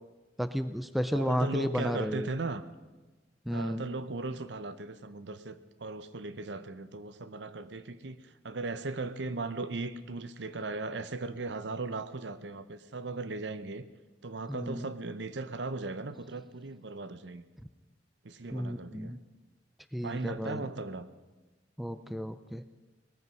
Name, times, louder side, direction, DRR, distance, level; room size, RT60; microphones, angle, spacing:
voice 1, 0.4-2.3 3.5-3.8 14.5-14.9 18.5-19.2 19.9-20.6 21.8-22.6, equal, ahead, 11 dB, 0.5 m, -32 dB
voice 2, 1.1-2.6 3.5-13.9 14.2-17.4 18.2-19.2 20.0-21.1, right 3 dB, 70° right, 13 dB, 0.8 m, -37 dB
19.5 x 14.0 x 5.4 m, 1.2 s
head